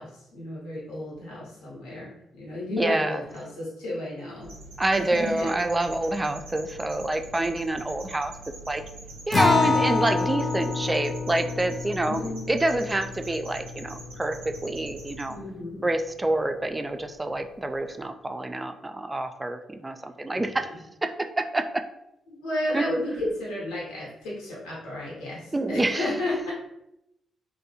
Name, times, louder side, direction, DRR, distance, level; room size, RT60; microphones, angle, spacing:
voice 1, 0.0-4.5 4.9-5.5 12.0-12.5 15.2-15.9 20.3-20.6 22.3-26.5, left 1 dB, 75° left, -6 dB, 0.8 m, -33 dB
voice 2, 2.8-3.2 4.8-8.3 8.7-8.8 9.3-12.2 12.5-15.4 15.8-20.7 21.0-21.8 22.7-22.8 25.5-26.1, right 2 dB, 20° right, 6 dB, 0.3 m, -27 dB
sound 1, 4.4-15.3, right 2 dB, 80° right, 0.5 m, -44 dB
Acoustic guitar, 9.3-14.2, left 4 dB, 40° left, 0.5 m, -27 dB
2.6 x 2.1 x 2.7 m, 0.84 s
hypercardioid pair, 40°, 0 cm